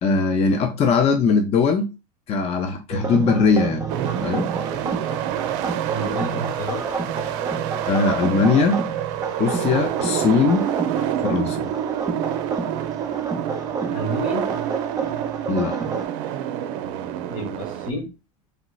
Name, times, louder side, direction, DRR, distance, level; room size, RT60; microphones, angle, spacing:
voice 1, 0.0-1.9 2.3-3.8 4.2-4.5 7.9-8.9 9.4-10.7 11.2-11.7 15.5-15.8, left 4 dB, 35° left, 0.6 m, -20 dB
sound 1, 2.9-16.1, right 4 dB, 20° right, 0.7 m, -30 dB
sound 2, 3.9-17.9, right 11 dB, 65° right, 0.4 m, -28 dB
voice 2, 5.9-6.9 13.9-14.5 17.3-18.1, equal, 80° left, 1.4 m, -30 dB
3.2 x 2.8 x 2.3 m
hypercardioid pair, 90°, 17 cm